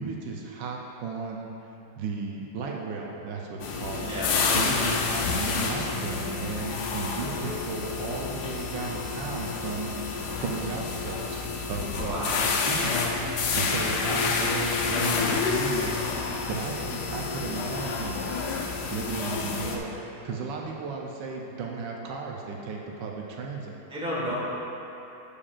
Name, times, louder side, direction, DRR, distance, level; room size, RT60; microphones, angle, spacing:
voice 1, 0.0-1.5 2.0-4.0 4.3-11.4 11.7-18.2 18.9-19.9 20.2-23.8, right 4 dB, 75° right, 0 dB, 1.3 m, -35 dB
sound 1, 3.6-19.8, left 4 dB, 70° left, 1.2 m, -29 dB
voice 2, 4.0-4.5 12.0-12.4 23.9-24.3, equal, 5° right, -7 dB, 1.2 m, -32 dB
9.8 x 7.0 x 2.5 m, 3.0 s
omnidirectional pair, 2.0 m